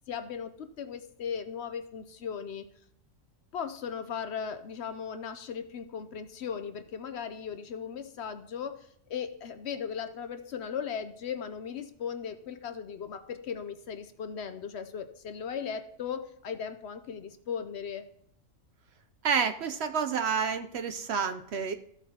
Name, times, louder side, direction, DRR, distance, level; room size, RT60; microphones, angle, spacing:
voice 1, 0.1-2.7 3.5-18.1, left 7 dB, 60° left, 9 dB, 0.8 m, -37 dB
voice 2, 19.2-21.7, right 6 dB, 65° right, 9 dB, 0.8 m, -29 dB
14.5 x 7.2 x 2.8 m, 0.69 s
omnidirectional pair, 1.4 m